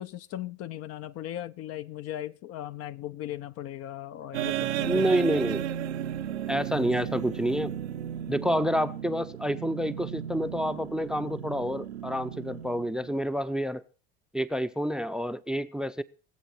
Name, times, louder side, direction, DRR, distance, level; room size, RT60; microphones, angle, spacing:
voice 1, 0.0-5.1, left 12 dB, 45° left, 0.7 m, -38 dB
sound 1, 4.3-13.2, right 10 dB, 80° right, 0.8 m, -34 dB
voice 2, 4.9-5.7 6.5-7.8 8.3-13.8 14.3-16.0, equal, ahead, 0.5 m, -28 dB
22.0 x 7.9 x 4.4 m
hypercardioid pair, 80°, 32 cm